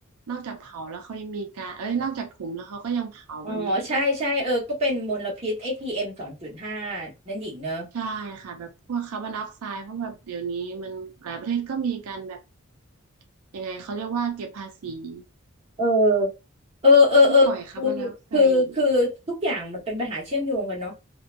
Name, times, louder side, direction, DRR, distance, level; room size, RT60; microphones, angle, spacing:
voice 1, 0.3-3.9 7.9-12.4 13.5-15.2 17.3-18.7, right 6 dB, 90° right, 0.4 m, -32 dB
voice 2, 3.4-7.8 15.8-16.3 16.8-17.5 17.8-20.9, left 2 dB, 30° right, 1.1 m, -22 dB
2.7 x 2.2 x 2.4 m
head